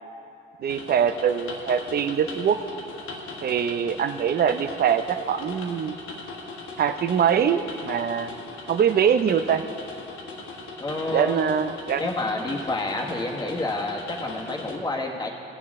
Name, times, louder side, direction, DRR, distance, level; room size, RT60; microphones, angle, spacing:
voice 1, 0.6-2.6 3.4-6.0 6.8-8.3 8.7-9.6 11.1-12.1, right 8 dB, 50° right, 10 dB, 0.6 m, -23 dB
sound 1, 0.7-14.8, left 3 dB, 80° left, 1.4 m, -39 dB
voice 2, 10.8-11.4 12.0-15.3, left 2 dB, 20° left, 0 dB, 1.5 m, -29 dB
17.5 x 7.0 x 3.7 m, 2.7 s
cardioid pair, 90°, 20 cm